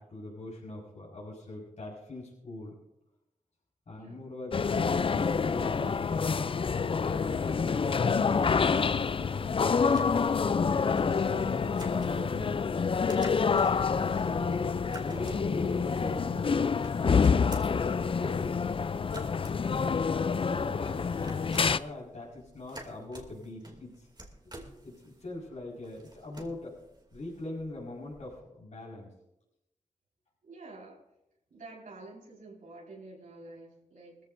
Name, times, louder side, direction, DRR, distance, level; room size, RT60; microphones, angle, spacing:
voice 1, 0.0-2.7 3.9-6.5 7.0-8.7 9.0-12.7 13.4-14.8 15.0-16.5 16.9-18.6 19.8-24.1 24.4-24.6 24.8-26.7 27.1-29.1, left 2 dB, 60° left, -5 dB, 4.9 m, -42 dB
voice 2, 3.9-4.3 30.4-31.0 31.5-34.2, right 2 dB, 85° right, -4 dB, 4.9 m, -49 dB
sound 1, 4.5-21.8, left 5 dB, 40° left, 0.4 m, -27 dB
sound 2, 9.6-28.4, right 2 dB, 30° right, 2.6 m, -52 dB
20.0 x 14.5 x 2.6 m, 0.87 s
cardioid pair, 65°, 13 cm